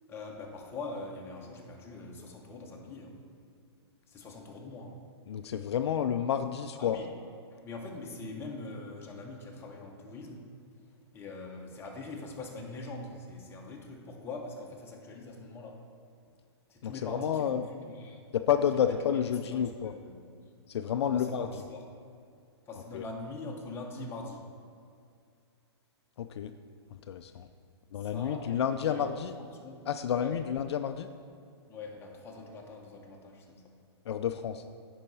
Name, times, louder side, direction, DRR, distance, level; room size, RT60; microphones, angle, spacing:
voice 1, 0.1-3.2 4.1-5.0 6.8-7.1 7.6-10.5 11.1-15.8 16.7-17.4 17.7-18.2 18.8-18.9 19.5-20.3 21.0-21.8 22.7-24.4 28.0-28.6 28.9-29.2 29.6-29.8 30.2-30.4 31.7-33.8, left 3 dB, 15° left, -1 dB, 1.1 m, -43 dB
voice 2, 5.3-7.0 16.8-17.7 18.3-19.9 20.7-21.6 22.9-23.0 26.2-26.5 26.9-27.5 27.9-29.4 29.9-31.1 34.1-34.6, left 9 dB, 70° left, 9 dB, 0.4 m, -30 dB
10.5 x 4.7 x 4.2 m, 2.4 s
hypercardioid pair, 135°, 14 cm